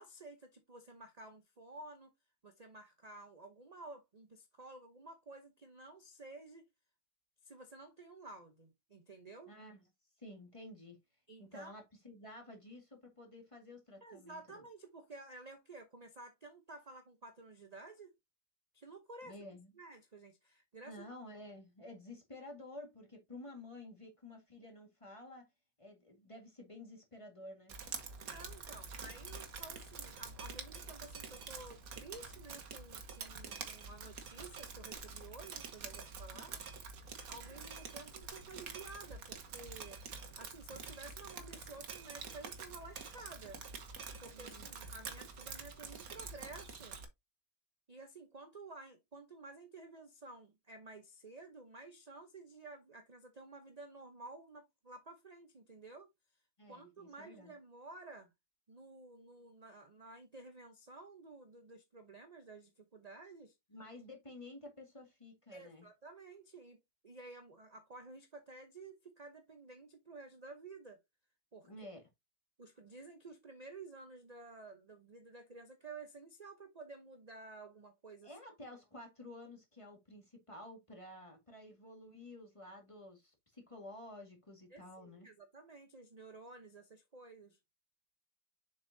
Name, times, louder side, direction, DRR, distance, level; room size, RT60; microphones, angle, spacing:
voice 1, 0.0-2.1 2.4-6.6 7.4-9.5 11.3-11.7 14.0-18.1 18.7-19.3 19.7-21.0 28.2-36.6 37.3-40.0 40.4-43.6 44.2-47.0 47.9-56.1 56.7-58.3 58.7-63.6 65.5-66.8 67.0-71.0 71.5-71.7 72.6-78.3 84.7-87.6, right 3 dB, 30° right, 0.8 m, -52 dB
voice 2, 9.5-9.9 10.2-11.0 11.4-14.6 19.2-19.8 20.8-25.5 25.8-27.7 36.3-36.4 44.3-44.7 56.6-57.5 63.7-65.9 71.6-72.0 78.2-85.3, left 1 dB, 20° left, 1.9 m, -52 dB
Drip, 27.7-47.1, right 5 dB, 60° right, 1.5 m, -47 dB
7.0 x 5.4 x 2.7 m
omnidirectional pair, 1.7 m